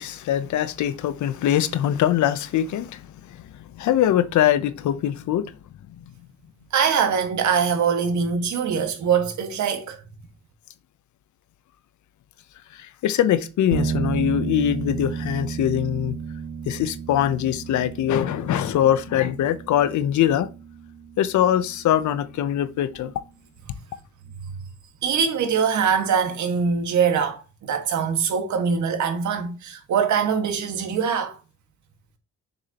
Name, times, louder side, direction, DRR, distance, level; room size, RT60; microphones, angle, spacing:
voice 1, 0.0-5.5 5.9-6.0 12.7-16.2 16.7-20.5 21.2-23.1, left 11 dB, 70° left, 0.8 m, -23 dB
voice 2, 6.7-10.0 25.0-31.4, right 6 dB, 70° right, 1.8 m, -23 dB
sound 1, 13.7-23.2, right 6 dB, 35° right, 0.9 m, -33 dB
7.0 x 6.7 x 2.9 m
cardioid pair, 90°, 30 cm